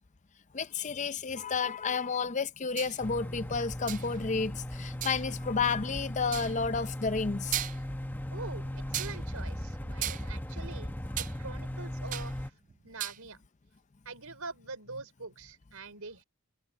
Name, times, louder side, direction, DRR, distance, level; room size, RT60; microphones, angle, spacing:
voice 1, 0.5-7.6, left 5 dB, 35° left, 0.5 m, -31 dB
sound 1, 2.8-3.0 3.9-4.2 5.0-5.3 6.3-6.6 7.1-7.2 7.5-8.0 8.9-9.2 10.0-11.4 11.7-12.4 12.7-13.2, right 12 dB, 35° right, 0.4 m, -36 dB
sound 2, 3.0-12.5, left 1 dB, 10° left, 0.8 m, -38 dB
voice 2, 8.3-12.5 12.8-13.4 14.0-16.2, right 3 dB, 80° right, 4.6 m, -44 dB
head